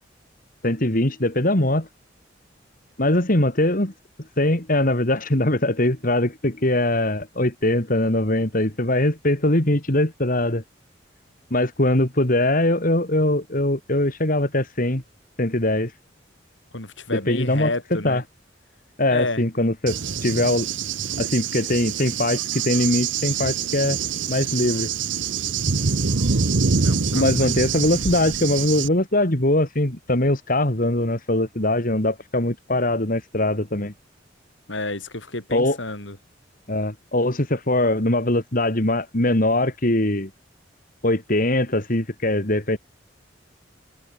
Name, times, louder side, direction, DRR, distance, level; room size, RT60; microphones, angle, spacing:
voice 1, 0.6-1.9 3.0-3.9 4.4-10.6 11.5-15.0 15.4-15.9 17.1-17.7 18.0-18.2 19.0-20.7 21.2-24.0 24.3-24.9 27.1-33.9 35.5-35.8 36.7-40.3 41.0-42.8, left 1 dB, 50° left, 3.4 m, -21 dB
voice 2, 16.7-18.2 19.1-19.5 26.8-27.7 34.7-36.2, left 2 dB, 85° left, 7.5 m, -30 dB
Cricket / Thunder, 19.9-28.9, right 5 dB, 85° right, 1.0 m, -25 dB
head